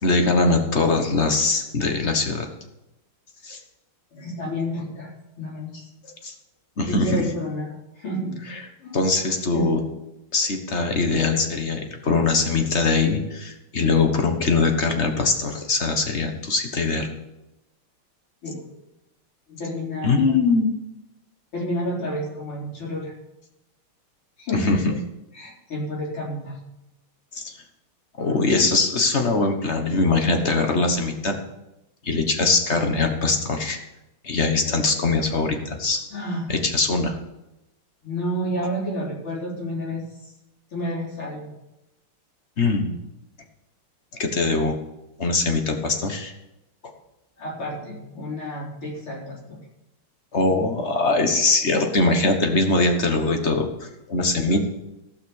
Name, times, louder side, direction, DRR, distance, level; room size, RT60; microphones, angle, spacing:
voice 1, 0.0-2.5 3.4-3.6 6.2-6.3 6.8-7.2 8.5-8.6 8.9-9.8 10.3-17.1 20.0-20.7 24.5-24.9 27.3-27.6 28.2-31.4 32.0-33.8 34.2-36.0 36.5-37.2 42.6-42.9 44.2-44.8 45.2-46.3 50.3-53.7 54.1-54.6, left 3 dB, 35° left, 5 dB, 1.3 m, -22 dB
voice 2, 4.1-5.9 6.9-8.3 8.8-8.9 9.5-9.7 18.4-18.6 19.5-20.2 21.5-23.1 24.4-24.8 25.3-26.6 36.1-36.4 38.0-40.0 40.7-41.5 47.4-49.6, equal, 80° left, -5 dB, 5.0 m, -30 dB
15.5 x 5.8 x 7.1 m, 0.93 s
omnidirectional pair, 2.3 m